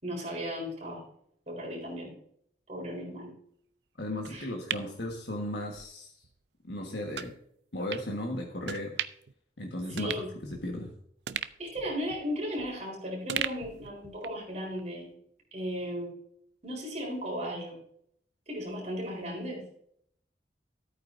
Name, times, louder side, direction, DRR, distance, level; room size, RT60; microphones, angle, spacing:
voice 1, 0.0-1.0 1.5-2.1 2.7-3.4 4.3-4.5 9.9-10.3 11.6-15.1 15.5-16.1 16.6-17.8 18.5-19.6, equal, 40° right, -1 dB, 4.0 m, -36 dB
voice 2, 4.0-6.1 6.6-7.3 7.7-8.9 9.6-10.9, left 1 dB, 70° left, 1 dB, 1.5 m, -35 dB
sound 1, 4.2-5.9 6.2-6.3 7.1-7.3 7.9-8.1 8.6-9.3 9.6-9.7 10.0-10.9 11.3-12.9 13.3-14.5 14.8-14.9, right 9 dB, 75° right, 0.5 m, -38 dB
14.0 x 8.8 x 2.6 m, 0.68 s
head